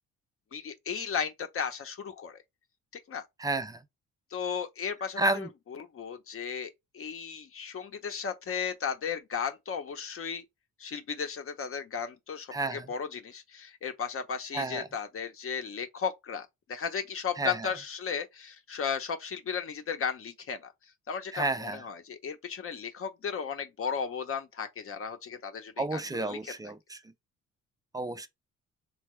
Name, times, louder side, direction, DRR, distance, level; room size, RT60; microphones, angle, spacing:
voice 1, 0.5-2.4 3.1-3.2 4.3-10.4 10.8-20.7 21.1-26.5, left 6 dB, 45° left, 0.8 m, -35 dB
voice 2, 3.4-3.8 5.2-5.5 12.5-12.9 14.5-14.9 17.4-17.7 21.3-21.8 25.8-27.0 27.9-28.3, right 2 dB, 10° right, 0.4 m, -31 dB
3.7 x 2.2 x 3.1 m
cardioid pair, 90°, 30 cm